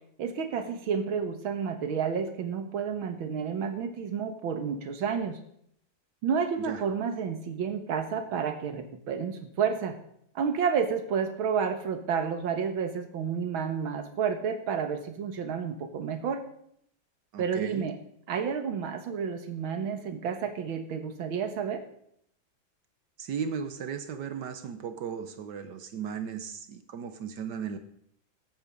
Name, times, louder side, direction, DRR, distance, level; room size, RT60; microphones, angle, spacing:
voice 1, 0.2-5.4 6.2-10.0 10.4-16.4 17.4-18.0 18.3-21.8, right 6 dB, 85° right, 8 dB, 2.1 m, -30 dB
voice 2, 17.3-17.8 23.2-27.8, right 7 dB, 65° right, 10 dB, 1.4 m, -36 dB
13.0 x 8.6 x 5.2 m, 0.69 s
omnidirectional pair, 2.2 m